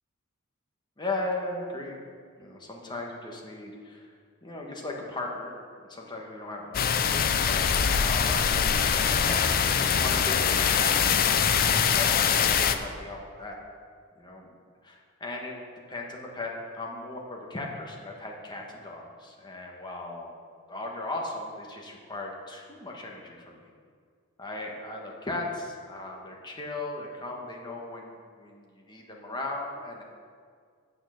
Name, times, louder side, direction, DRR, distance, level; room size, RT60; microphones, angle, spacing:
voice 1, 1.0-2.0 2.4-4.1 4.4-5.5 5.8-8.8 9.1-13.6 14.1-14.5 14.8-15.6 15.9-20.4 20.7-23.6 24.4-30.0, left 2 dB, 20° left, -1 dB, 1.3 m, -37 dB
sound 1, 6.7-12.8, left 7 dB, 45° left, 0.5 m, -23 dB
8.9 x 6.5 x 6.4 m, 2.1 s
head